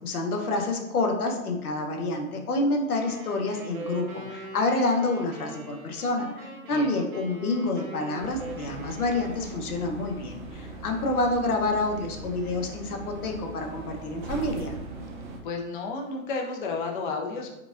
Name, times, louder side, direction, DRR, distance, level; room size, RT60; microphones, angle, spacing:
voice 1, 0.0-14.7, left 2 dB, 90° left, 3 dB, 0.8 m, -28 dB
sound 1, 2.9-9.7, right 1 dB, 75° right, 1.0 m, -42 dB
sound 2, 8.2-15.4, right 3 dB, 35° right, 0.4 m, -40 dB
voice 2, 15.4-17.5, left 4 dB, 40° left, 1 dB, 0.4 m, -32 dB
4.7 x 2.2 x 2.4 m, 0.97 s
hypercardioid pair, 140°, 43 cm